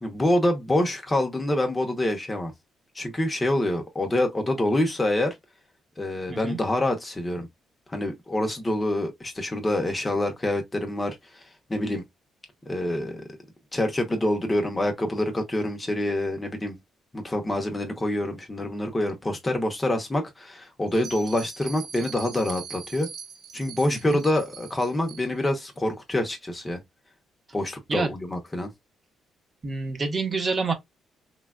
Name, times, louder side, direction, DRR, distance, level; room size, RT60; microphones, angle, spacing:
voice 1, 0.0-2.5 3.0-5.3 6.0-7.5 7.9-11.2 11.7-12.0 12.7-13.3 13.7-16.8 17.1-23.1 23.5-26.8 27.5-28.7, left 1 dB, 20° left, 0.8 m, -26 dB
voice 2, 6.3-6.6 23.9-24.2 27.9-28.1 29.6-30.7, right 4 dB, 35° right, 0.9 m, -28 dB
Bell, 20.9-25.5, right 6 dB, 65° right, 1.0 m, -42 dB
3.2 x 2.2 x 2.3 m
cardioid pair, 90°, 0 cm